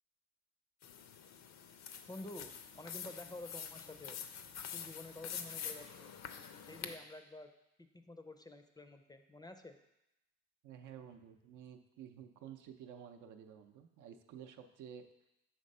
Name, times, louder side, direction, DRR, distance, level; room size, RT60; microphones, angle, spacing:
sound 1, 0.8-6.9, left 7 dB, 65° left, 0.6 m, -46 dB
voice 1, 2.1-6.1 6.6-7.5 7.8-9.8, left 2 dB, 15° left, 8 dB, 0.4 m, -50 dB
voice 2, 10.6-15.0, right 8 dB, 85° right, 6 dB, 0.6 m, -52 dB
6.6 x 3.3 x 5.3 m, 0.87 s
cardioid pair, 90°, 30 cm